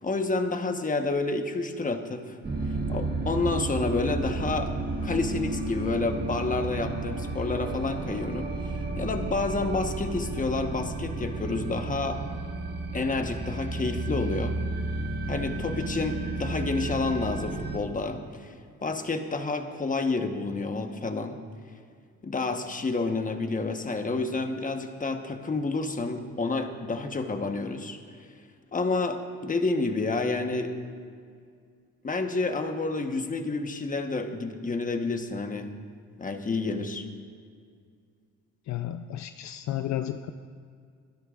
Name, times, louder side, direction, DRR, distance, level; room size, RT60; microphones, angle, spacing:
voice 1, 0.0-2.4 2.9-4.7 5.0-12.2 12.9-14.5 15.3-18.5 18.8-21.4 22.2-28.0 28.7-30.7 32.0-35.7 36.2-37.1, left 3 dB, 25° left, 5 dB, 1.1 m, -29 dB
sound 1, 2.4-17.8, right 2 dB, 35° right, 1.4 m, -32 dB
voice 2, 38.7-40.3, left 12 dB, 65° left, 9 dB, 0.5 m, -32 dB
23.0 x 12.0 x 2.5 m, 2.1 s
cardioid pair, 90°, 30 cm